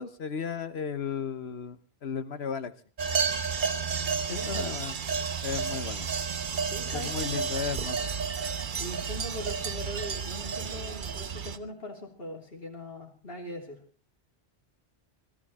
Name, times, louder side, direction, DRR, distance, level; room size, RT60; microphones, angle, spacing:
voice 1, 0.0-2.7 4.3-5.0 5.4-6.1 6.9-8.1, left 6 dB, 80° left, 11 dB, 1.4 m, -35 dB
sound 1, 3.0-11.6, right 6 dB, 55° right, 1.0 m, -31 dB
voice 2, 4.3-4.8 6.6-7.5 8.8-13.8, left 1 dB, 65° left, 1 dB, 3.6 m, -41 dB
17.5 x 13.5 x 4.3 m, 0.42 s
omnidirectional pair, 1.1 m